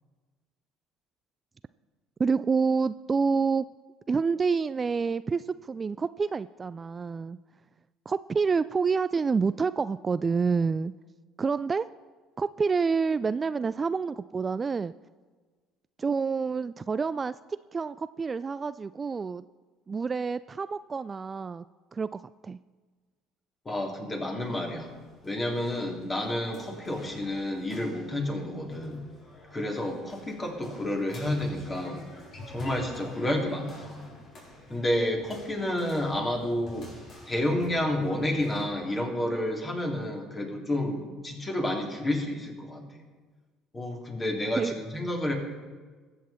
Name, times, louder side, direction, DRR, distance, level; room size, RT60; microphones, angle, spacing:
voice 1, 2.2-3.7 4.1-7.4 8.1-10.9 11.4-11.9 12.4-14.9 16.0-19.4 19.9-21.6 21.9-22.6 44.6-44.7, right 5 dB, 30° right, 15 dB, 0.3 m, -28 dB
voice 2, 23.6-24.9 25.2-29.0 29.5-32.0 32.5-34.1 34.7-36.9 37.2-43.0 43.7-45.3, left 1 dB, 25° left, 1 dB, 3.5 m, -30 dB
sound 1, 24.4-38.7, left 2 dB, 50° left, 4.6 m, -49 dB
21.5 x 8.4 x 4.4 m, 1.4 s
hypercardioid pair, 65°, 0 cm